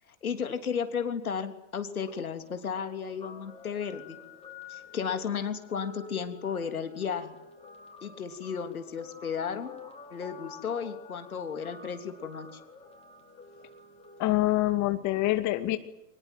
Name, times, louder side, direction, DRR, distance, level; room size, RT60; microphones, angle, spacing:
voice 1, 0.2-4.2 4.7-7.3 8.0-9.8 10.1-12.5, left 7 dB, 85° left, 7 dB, 3.3 m, -34 dB
Guitar, 2.0-14.7, left 4 dB, 15° left, 6.0 m, -49 dB
voice 2, 14.2-15.8, left 16 dB, 40° left, 9 dB, 2.3 m, -25 dB
24.5 x 21.5 x 9.4 m, 0.85 s
hypercardioid pair, 95°, 42 cm